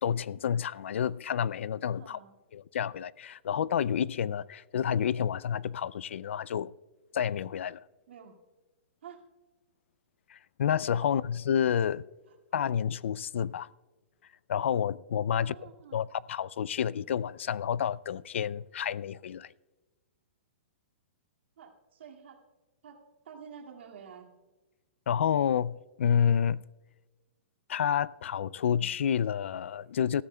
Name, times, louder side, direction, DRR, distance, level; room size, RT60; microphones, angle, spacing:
voice 1, 0.0-2.2 2.5-6.7 7.1-7.8 10.3-12.1 12.5-13.7 14.5-15.5 15.9-19.5 25.1-26.6 27.7-30.2, left 8 dB, 80° left, 0.3 m, -29 dB
voice 2, 2.0-2.4 8.1-8.4 9.0-9.2 11.0-11.2 12.3-12.4 15.3-16.0 21.6-22.4 22.8-23.0 23.2-24.3, right 7 dB, 70° right, 2.1 m, -49 dB
21.0 x 14.0 x 2.2 m
hypercardioid pair, 175°, 6 cm